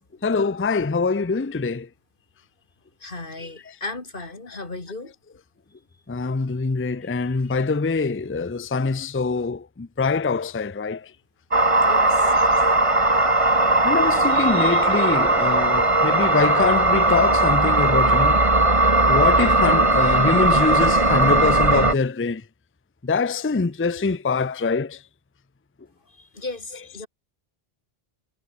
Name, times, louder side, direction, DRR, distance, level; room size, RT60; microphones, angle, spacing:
voice 1, 0.2-1.9 6.1-11.0 13.8-18.4 19.1-22.4 23.0-25.0, left 4 dB, 15° left, 0.5 m, -24 dB
voice 2, 3.0-5.1 7.0-7.3 11.9-12.4 13.9-14.8 26.1-27.1, left 2 dB, 55° left, 3.4 m, -37 dB
sound 1, 11.5-21.9, right 2 dB, 30° right, 2.2 m, -18 dB
omnidirectional pair, 1.1 m